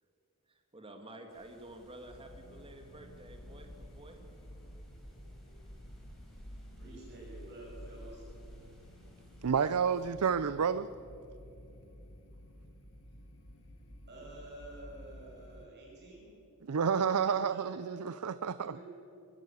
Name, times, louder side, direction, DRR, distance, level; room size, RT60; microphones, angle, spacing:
voice 1, 0.5-4.2, right 1 dB, 25° right, 4 dB, 1.8 m, -51 dB
sound 1, 1.3-10.1, equal, ahead, 4.8 m, -57 dB
sound 2, 2.0-15.7, equal, 60° left, 2.0 m, -52 dB
voice 2, 6.7-8.2 14.1-16.3 17.2-17.7 18.6-18.9, right 2 dB, 50° right, -4 dB, 6.1 m, -50 dB
voice 3, 9.4-10.9 16.6-18.8, right 6 dB, 85° right, 15 dB, 0.5 m, -30 dB
22.5 x 15.5 x 8.4 m, 2.9 s
head